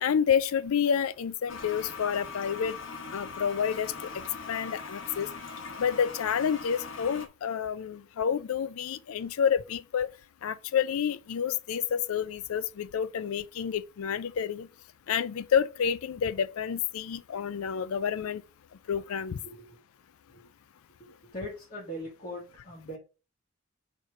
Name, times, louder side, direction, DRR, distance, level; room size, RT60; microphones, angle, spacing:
voice 1, 0.0-2.8 3.1-3.9 4.5-5.3 5.8-10.1 10.4-14.7 15.1-18.4 18.9-19.4, left 7 dB, 85° left, 0.4 m, -29 dB
Toilet flush, 1.5-7.3, left 5 dB, 65° left, 1.1 m, -41 dB
voice 2, 19.4-19.8 20.3-20.4 21.0-23.0, equal, 35° left, 1.7 m, -41 dB
4.8 x 4.4 x 5.7 m
head